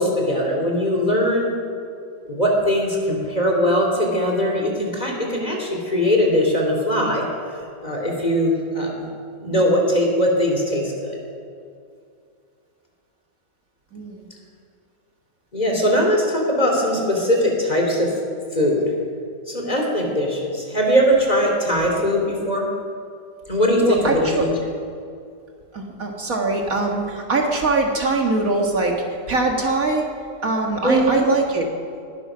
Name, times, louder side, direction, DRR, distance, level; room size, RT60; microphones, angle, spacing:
voice 1, 0.0-1.5 2.3-7.2 7.8-9.1 9.4-11.2 15.5-18.2 18.5-18.9 19.5-22.7 23.5-24.5 30.8-31.1, equal, 25° left, 0 dB, 3.0 m, -20 dB
voice 2, 13.9-14.3 23.8-24.5 25.7-30.1 30.4-31.7, right 3 dB, 55° right, 0 dB, 2.1 m, -22 dB
20.0 x 10.5 x 6.2 m, 2.4 s
omnidirectional pair, 1.8 m